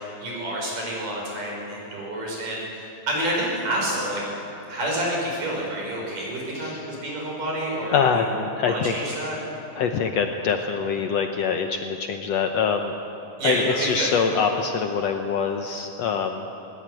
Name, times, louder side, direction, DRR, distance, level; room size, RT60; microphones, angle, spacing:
voice 1, 0.2-4.2 4.7-8.2 8.6-9.4 13.4-14.1, right 1 dB, 80° right, -2 dB, 7.2 m, -28 dB
voice 2, 6.6-6.9 7.9-8.9 9.8-12.9 13.4-16.5, left 6 dB, 65° left, 5 dB, 1.8 m, -24 dB
20.5 x 19.0 x 9.1 m, 2.9 s
omnidirectional pair, 3.7 m